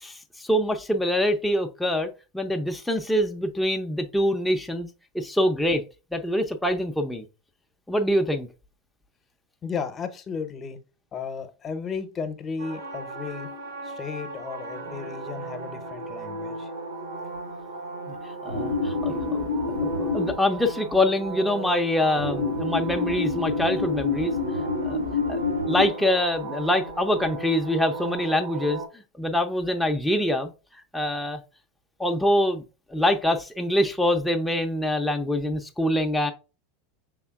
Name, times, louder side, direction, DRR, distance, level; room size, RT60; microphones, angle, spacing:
voice 1, 0.0-4.9 5.1-5.8 6.1-7.2 7.9-8.5 18.1-18.2 18.4-19.4 19.7-24.3 24.8-25.0 25.3-25.4 25.7-28.8 29.2-30.5 30.9-31.4 32.0-32.6 32.9-36.3, left 1 dB, 5° left, 0.6 m, -25 dB
voice 2, 9.6-10.8 11.1-13.5 13.8-16.7, left 5 dB, 35° left, 0.8 m, -34 dB
sound 1, 12.6-28.9, left 2 dB, 80° right, 1.0 m, -30 dB
5.5 x 3.5 x 2.4 m
hypercardioid pair, 95°, 0 cm